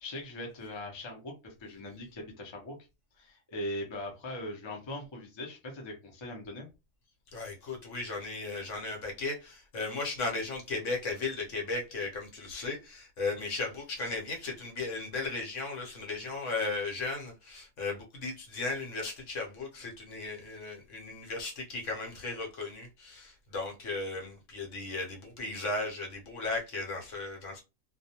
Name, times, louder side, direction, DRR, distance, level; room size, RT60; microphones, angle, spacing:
voice 1, 0.0-2.8 3.1-6.7, left 1 dB, 30° left, 0.5 m, -40 dB
voice 2, 7.3-27.6, left 3 dB, 65° left, 1.1 m, -36 dB
2.3 x 2.2 x 2.8 m
omnidirectional pair, 1.4 m